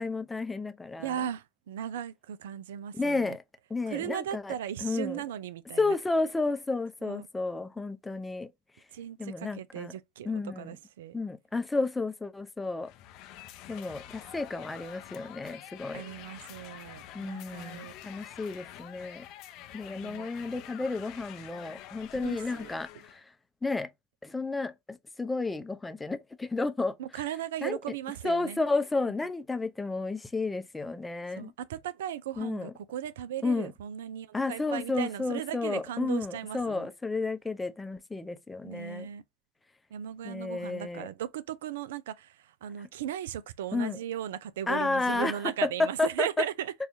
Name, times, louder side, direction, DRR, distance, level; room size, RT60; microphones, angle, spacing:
voice 1, 0.0-1.2 2.9-3.4 3.7-4.6 4.8-5.2 5.8-8.5 9.2-9.9 10.2-10.8 11.1-12.9 13.7-16.0 17.1-19.2 19.7-23.3 23.6-23.9 24.2-27.2 27.6-27.8 28.2-31.5 32.4-32.7 33.4-33.7 34.3-39.1 40.2-41.1 43.7-44.0 44.7-46.3, left 3 dB, 10° left, 0.6 m, -32 dB
voice 2, 1.0-3.4 3.9-6.0 7.0-7.3 8.9-11.1 15.9-17.9 20.0-20.3 22.2-22.7 27.0-28.6 31.3-36.9 38.6-39.2 39.9-46.7, right 10 dB, 75° right, 0.3 m, -37 dB
sound 1, 12.8-23.2, left 12 dB, 55° left, 0.5 m, -47 dB
4.1 x 2.4 x 2.6 m
hypercardioid pair, 85°, 0 cm